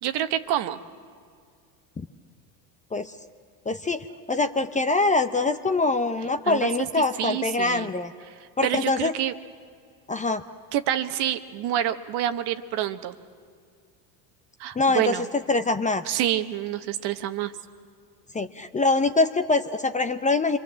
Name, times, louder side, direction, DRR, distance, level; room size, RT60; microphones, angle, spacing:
voice 1, 0.0-0.8 6.5-6.9 7.2-7.9 8.3-9.4 10.7-13.1 14.6-15.3 16.0-17.5, right 11 dB, 55° right, 9 dB, 1.3 m, -27 dB
voice 2, 3.7-8.1 8.6-9.1 10.1-10.4 14.8-15.2 15.5-16.0 18.3-20.6, left 3 dB, 15° left, 9 dB, 0.7 m, -24 dB
26.5 x 23.5 x 7.5 m, 2.1 s
hypercardioid pair, 90°, 49 cm